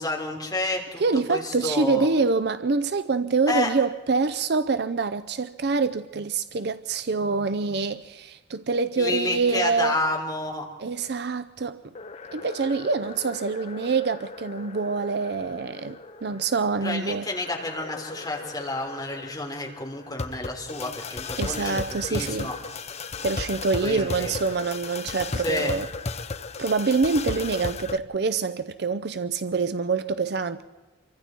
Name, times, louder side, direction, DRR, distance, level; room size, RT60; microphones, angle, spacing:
voice 1, 0.0-1.0 1.3-2.1 3.5-3.7 9.0-10.7 16.8-21.8 22.1-22.6 23.8-24.3 25.4-25.7, left 2 dB, 20° left, 3.7 m, -30 dB
voice 2, 1.0-9.9 10.8-11.8 12.3-17.3 21.4-22.5 23.2-25.9 26.6-30.6, right 4 dB, 60° right, 0.6 m, -26 dB
sound 1, 12.0-28.0, left 4 dB, 35° left, 0.7 m, -36 dB
27.5 x 24.0 x 4.5 m
head